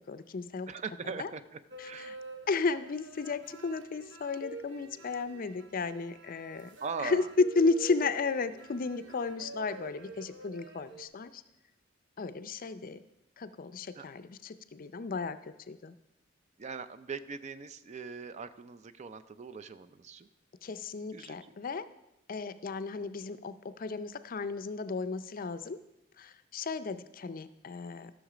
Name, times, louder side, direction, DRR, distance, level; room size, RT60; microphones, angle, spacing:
voice 1, 0.1-0.7 1.2-1.3 1.8-2.2 2.5-6.7 7.0-11.4 12.2-13.0 13.4-15.4 15.7-15.9 20.6-21.9 22.3-25.8 26.2-28.1, left 4 dB, 45° left, 13 dB, 0.5 m, -33 dB
voice 2, 0.7-2.2 6.8-7.3 14.0-14.1 16.6-20.3 21.1-21.4, right 5 dB, 35° right, 13 dB, 0.4 m, -41 dB
sound 1, 1.7-11.1, right 3 dB, 65° right, 0.9 m, -47 dB
13.5 x 6.4 x 5.0 m, 0.89 s
head